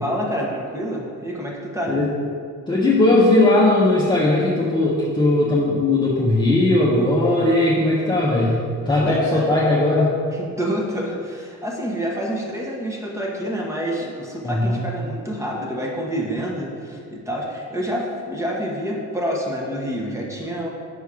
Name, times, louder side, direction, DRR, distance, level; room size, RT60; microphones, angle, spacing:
voice 1, 0.0-1.9 9.0-9.5 10.3-20.7, equal, 10° right, -2 dB, 1.2 m, -27 dB
voice 2, 2.7-8.6 8.8-10.1 14.4-14.8, left 2 dB, 15° left, -7 dB, 1.0 m, -18 dB
5.8 x 4.5 x 4.9 m, 2.2 s
cardioid pair, 90°, 30 cm